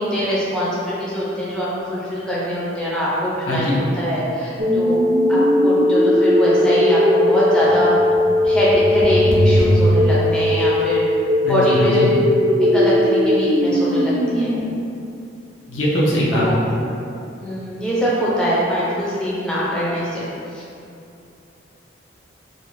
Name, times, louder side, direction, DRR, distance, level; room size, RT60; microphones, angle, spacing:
voice 1, 0.0-5.0 5.3-7.9 8.4-11.0 11.5-12.1 12.6-14.5 16.3-16.5 17.4-20.2 20.5-20.6, equal, 5° left, -9 dB, 0.4 m, -23 dB
voice 2, 3.4-3.8 11.4-12.1 15.7-16.7, equal, 90° left, -5 dB, 0.6 m, -20 dB
sound 1, 4.6-14.6, left 1 dB, 85° right, 0.5 m, -17 dB
2.5 x 2.1 x 3.0 m, 2.6 s
head